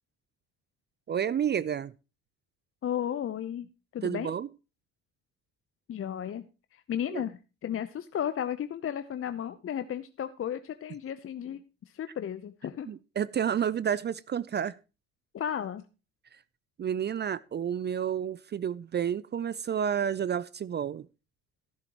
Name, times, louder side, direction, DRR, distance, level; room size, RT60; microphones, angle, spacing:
voice 1, 1.1-1.9 4.0-4.5 7.1-7.2 12.9-14.7 16.8-21.1, right 8 dB, 35° right, 0.5 m, -30 dB
voice 2, 2.8-3.7 3.9-4.3 5.9-6.4 6.7-11.6 11.9-12.9 15.3-15.8, left 9 dB, 45° left, 0.8 m, -34 dB
13.5 x 11.5 x 3.0 m
hypercardioid pair, 50°, 31 cm